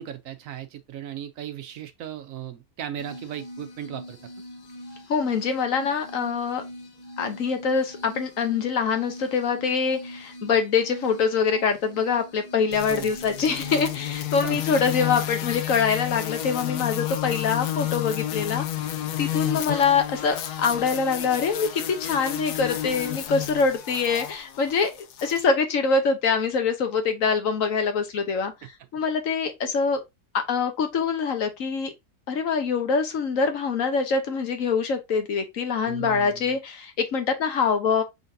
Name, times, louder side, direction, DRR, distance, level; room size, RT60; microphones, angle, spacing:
voice 1, 0.0-4.2 12.9-13.1 14.4-14.6 35.8-36.4, right 10 dB, 70° right, 0.9 m, -36 dB
sound 1, 3.0-14.0, equal, 30° left, 1.1 m, -42 dB
voice 2, 5.1-6.6 7.2-18.7 19.2-24.9 25.2-28.5 28.9-30.0 30.3-31.9 32.3-38.0, left 5 dB, 60° left, 1.2 m, -24 dB
sound 2, 12.7-25.4, left 12 dB, 85° left, 1.2 m, -31 dB
5.1 x 3.9 x 2.6 m
omnidirectional pair, 1.7 m